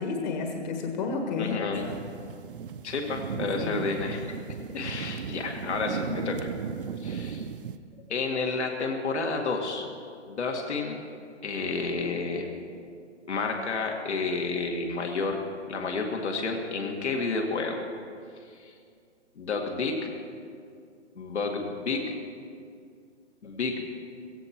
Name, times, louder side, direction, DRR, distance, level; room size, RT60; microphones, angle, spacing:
voice 1, 0.0-2.0 3.6-3.8 6.0-6.2, left 4 dB, 40° left, 3 dB, 1.6 m, -31 dB
voice 2, 1.4-1.9 2.8-6.5 7.0-7.5 8.1-9.9 10.3-11.0 11.4-12.5 13.3-17.8 18.5-18.7 19.4-20.1 21.2-22.1 23.4-23.8, left 4 dB, 70° left, 1 dB, 2.2 m, -30 dB
sound 1, 1.7-7.8, right 7 dB, 50° right, 0.7 m, -36 dB
16.5 x 15.5 x 4.6 m, 2.2 s
hypercardioid pair, 160°, 35 cm